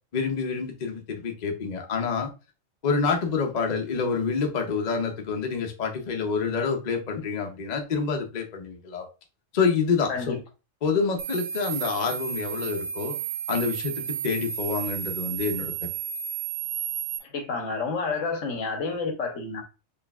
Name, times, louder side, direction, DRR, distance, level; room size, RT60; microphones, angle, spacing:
voice 1, 0.1-2.3 2.8-9.1 9.5-10.4 10.8-13.2 13.5-15.7, left 5 dB, 45° left, 0.7 m, -27 dB
sound 1, 11.2-17.2, right 9 dB, 70° right, 0.8 m, -32 dB
voice 2, 17.2-19.6, left 4 dB, 80° left, 1.3 m, -30 dB
4.3 x 3.3 x 2.3 m
omnidirectional pair, 1.3 m